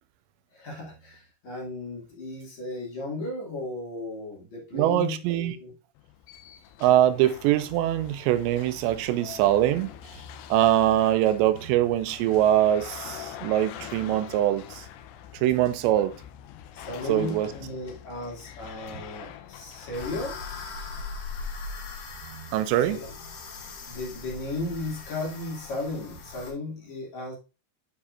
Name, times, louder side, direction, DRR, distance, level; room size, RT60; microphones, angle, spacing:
voice 1, 0.5-5.7 15.9-16.0 16.7-20.4 22.8-23.1 23.9-27.3, left 2 dB, 45° left, 3.0 m, -35 dB
voice 2, 4.7-5.6 6.8-9.9 10.5-14.9 15.3-16.1 17.1-17.5 22.3-23.0, right 12 dB, 85° right, 2.9 m, -23 dB
sound 1, 6.0-21.1, left 10 dB, 80° left, 2.6 m, -44 dB
sound 2, 19.9-26.5, left 4 dB, 65° left, 3.6 m, -39 dB
10.0 x 5.3 x 2.5 m
omnidirectional pair, 5.1 m